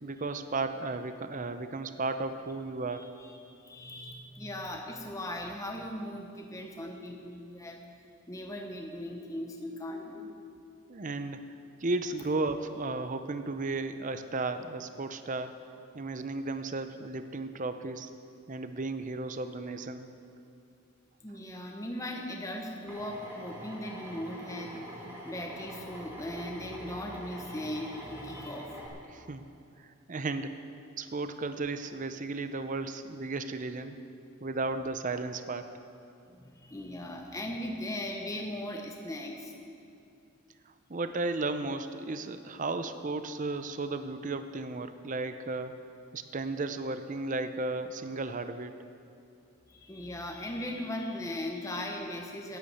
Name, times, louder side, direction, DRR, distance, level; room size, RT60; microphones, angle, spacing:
voice 1, 0.0-3.1 10.9-11.4 11.8-15.6 15.9-18.1 18.5-20.1 29.1-29.4 29.8-30.5 31.0-34.0 34.4-35.7 40.7-45.7 46.1-48.7, right 3 dB, 35° right, 10 dB, 0.6 m, -34 dB
voice 2, 2.9-7.8 8.3-10.4 21.2-28.9 36.3-39.5 49.7-52.6, left 1 dB, 15° left, 2 dB, 0.9 m, -38 dB
Drill, 22.9-28.9, equal, 10° right, 1.9 m, -45 dB
11.0 x 10.0 x 8.0 m, 2.7 s
head